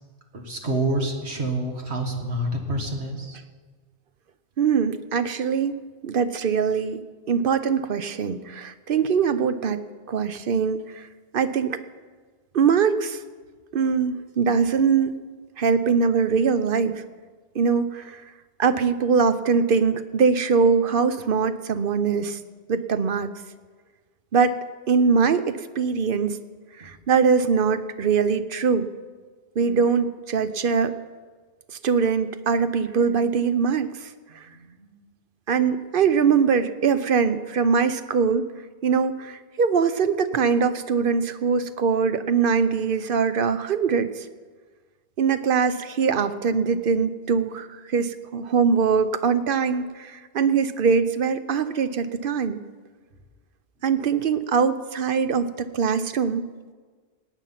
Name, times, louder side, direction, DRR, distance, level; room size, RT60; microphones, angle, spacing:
voice 1, 0.3-3.4 26.8-26.9 34.3-35.0, right 1 dB, 75° right, 2 dB, 2.1 m, -28 dB
voice 2, 4.6-7.0 7.3-9.8 10.1-11.1 11.3-11.8 12.5-13.2 13.7-15.1 15.6-17.0 17.5-18.2 18.6-22.4 22.7-23.3 24.3-24.6 24.9-26.4 26.8-28.9 29.6-30.9 31.8-34.1 34.3-34.4 35.5-38.5 38.8-44.3 45.2-52.6 53.8-56.4, right 5 dB, 60° right, 12 dB, 0.8 m, -22 dB
18.0 x 9.1 x 5.8 m, 1.5 s
omnidirectional pair, 1.1 m